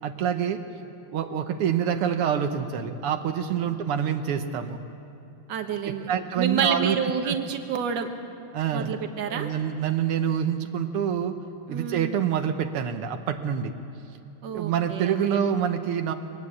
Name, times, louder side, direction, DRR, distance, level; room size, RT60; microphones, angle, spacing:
voice 1, 0.0-0.6 1.1-4.8 6.1-7.0 7.2-7.4 8.5-9.0 9.3-11.4 11.7-13.7 14.5-16.1, right 8 dB, 85° right, 7 dB, 1.9 m, -26 dB
voice 2, 5.5-6.1 6.4-8.1 8.7-9.5 11.7-12.3 14.4-15.5, right 7 dB, 60° right, 6 dB, 1.9 m, -29 dB
22.5 x 18.5 x 8.4 m, 2.6 s
omnidirectional pair, 2.4 m